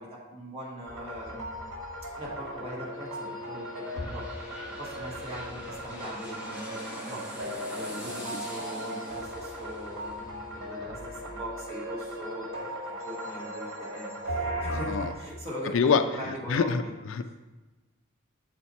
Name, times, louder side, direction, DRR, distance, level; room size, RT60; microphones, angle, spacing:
voice 1, 0.0-1.7 2.1-7.2 7.7-12.6 13.0-16.9, equal, 30° right, -5 dB, 1.6 m, -40 dB
sound 1, 0.9-15.1, equal, 65° right, 1.7 m, -37 dB
sound 2, 2.7-12.3 12.7-12.8, equal, 5° right, 1.0 m, -45 dB
voice 2, 14.7-15.1 15.7-16.0 16.5-16.8 17.1-17.4, left 6 dB, 70° left, 10 dB, 0.3 m, -25 dB
7.0 x 4.3 x 4.2 m, 1.2 s
head